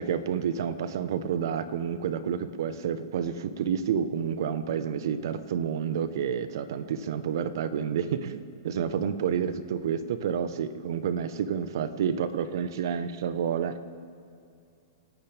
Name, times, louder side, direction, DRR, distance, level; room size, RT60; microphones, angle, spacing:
voice 1, 0.0-13.8, right 7 dB, 65° right, 12 dB, 1.1 m, -29 dB
28.0 x 12.0 x 3.6 m, 2.5 s
hypercardioid pair, 135°, 2 cm